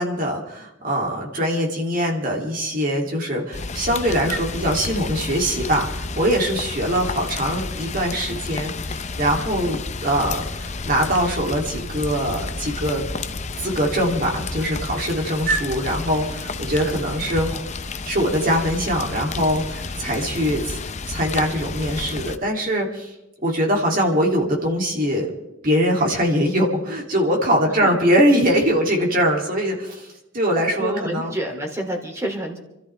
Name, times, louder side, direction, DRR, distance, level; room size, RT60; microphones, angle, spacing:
voice 1, 0.0-13.0 13.6-17.6 18.0-20.8 21.1-23.1 23.4-25.3 25.6-31.3, equal, 45° right, -1 dB, 3.0 m, -22 dB
Rain, 3.5-22.4, left 3 dB, 35° left, 0.7 m, -31 dB
voice 2, 30.8-32.6, right 1 dB, 15° right, 1 dB, 3.0 m, -28 dB
29.0 x 13.5 x 3.5 m, 0.91 s
head